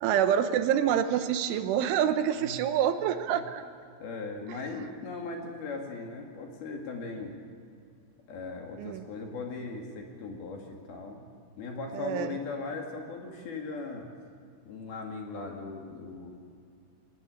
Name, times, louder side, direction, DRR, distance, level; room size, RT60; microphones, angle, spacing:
voice 1, 0.0-3.6 8.8-9.0 11.9-12.4, right 9 dB, 85° right, 9 dB, 3.4 m, -27 dB
voice 2, 4.0-7.4 8.3-11.2 11.6-14.1 14.7-16.3, left 3 dB, 55° left, 1 dB, 3.9 m, -38 dB
24.5 x 18.5 x 8.3 m, 2.2 s
omnidirectional pair, 5.7 m